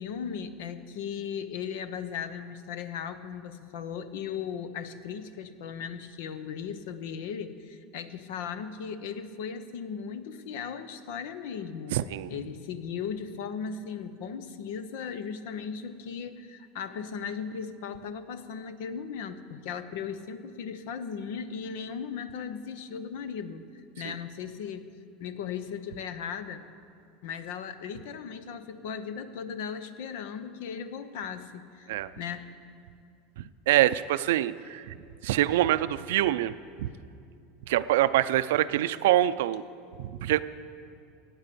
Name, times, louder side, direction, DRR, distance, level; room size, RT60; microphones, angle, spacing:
voice 1, 0.0-12.0 12.3-24.9 25.2-26.6 27.2-31.9 32.2-32.5, left 7 dB, 75° left, 12 dB, 0.9 m, -37 dB
voice 2, 11.9-12.3 24.0-24.1 31.9-32.1 33.4-34.9 35.2-36.9 37.7-39.6 40.0-40.4, right 13 dB, 80° right, 14 dB, 0.5 m, -25 dB
17.0 x 9.1 x 6.8 m, 2.5 s
supercardioid pair, 120°, 0 cm